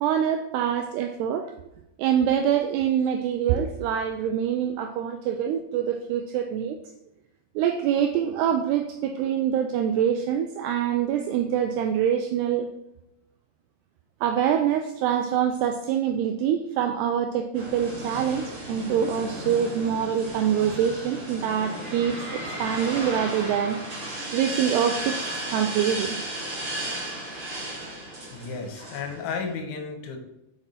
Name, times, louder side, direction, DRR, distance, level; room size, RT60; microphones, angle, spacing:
voice 1, 0.0-1.5 2.0-6.8 7.6-12.7 14.2-23.8 24.3-25.3 25.5-26.2, right 9 dB, 85° right, 6 dB, 2.3 m, -25 dB
sound 1, 17.5-29.5, right 1 dB, 40° right, 2.3 m, -34 dB
voice 2, 28.3-30.2, left 5 dB, 90° left, 3 dB, 3.6 m, -33 dB
6.7 x 6.0 x 4.1 m, 0.87 s
omnidirectional pair, 5.2 m